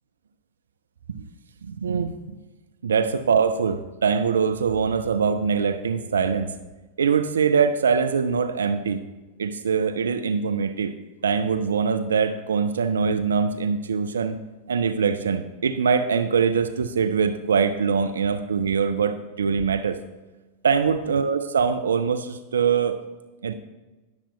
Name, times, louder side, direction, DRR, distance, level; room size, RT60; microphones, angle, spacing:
voice 1, 1.7-2.2 2.8-6.5 7.0-9.0 9.4-10.9 11.2-14.4 14.7-20.0 20.6-23.0 23.4-23.5, right 6 dB, 70° right, 9 dB, 0.4 m, -23 dB
20.0 x 7.2 x 2.2 m, 1.1 s
figure-of-eight pair, 90°, 0 cm